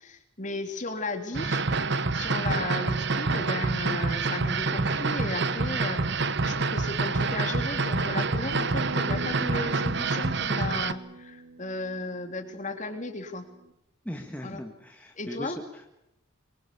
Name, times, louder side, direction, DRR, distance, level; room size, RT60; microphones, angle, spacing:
voice 1, 0.0-1.7 2.1-13.5 14.4-14.6 15.2-15.6, left 2 dB, 35° left, 6 dB, 3.3 m, -35 dB
sound 1, 1.3-10.9, right 3 dB, 50° right, 1.0 m, -27 dB
Acoustic guitar, 8.5-13.7, right 2 dB, 65° right, 2.5 m, -42 dB
voice 2, 14.0-15.9, equal, 5° left, 2 dB, 1.8 m, -39 dB
25.0 x 24.0 x 6.9 m, 0.84 s
head